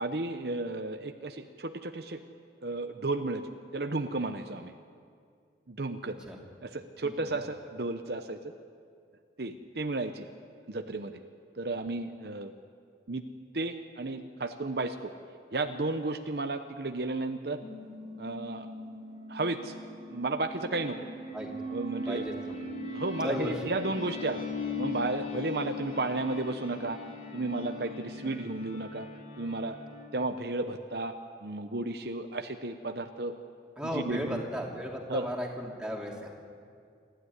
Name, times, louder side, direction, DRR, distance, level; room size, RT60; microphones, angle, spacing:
voice 1, 0.0-2.2 2.6-3.4 3.7-4.7 5.7-6.2 6.6-8.5 9.4-10.3 10.7-11.2 11.6-12.5 13.1-13.3 13.5-15.1 15.5-17.6 18.2-18.7 19.3-19.7 20.1-21.1 21.7-22.2 22.8-24.5 24.8-27.0 27.3-29.1 29.4-29.8 30.1-31.1 31.4-33.4 33.9-34.4 35.1-35.3, right 2 dB, 60° right, 7 dB, 0.9 m, -33 dB
voice 2, 6.1-6.4 7.0-7.3 21.3-21.5 22.1-22.6 23.2-23.5 33.8-36.3, equal, 5° right, -2 dB, 3.1 m, -35 dB
sound 1, 17.6-30.1, left 3 dB, 40° left, 3.3 m, -40 dB
28.0 x 13.0 x 9.7 m, 2.2 s
head